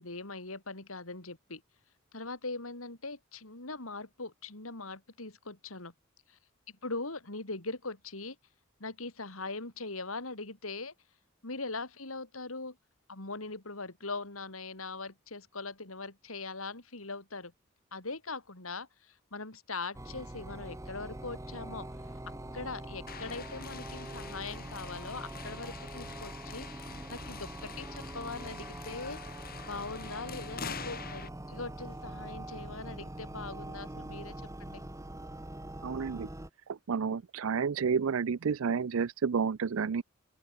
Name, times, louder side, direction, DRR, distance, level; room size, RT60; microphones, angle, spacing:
voice 1, 0.0-1.6 2.1-5.9 6.3-6.4 6.7-8.4 8.8-10.9 11.4-12.8 13.1-17.5 17.9-21.9 22.5-29.2 29.7-34.8, left 3 dB, 85° left, 4.0 m, -41 dB
sound 1, 19.9-36.5, right 1 dB, 15° right, 1.2 m, -43 dB
sound 2, 23.1-31.3, left 6 dB, 45° left, 4.4 m, -46 dB
voice 2, 35.8-36.3 36.7-40.0, right 6 dB, 70° right, 0.5 m, -30 dB
open air
head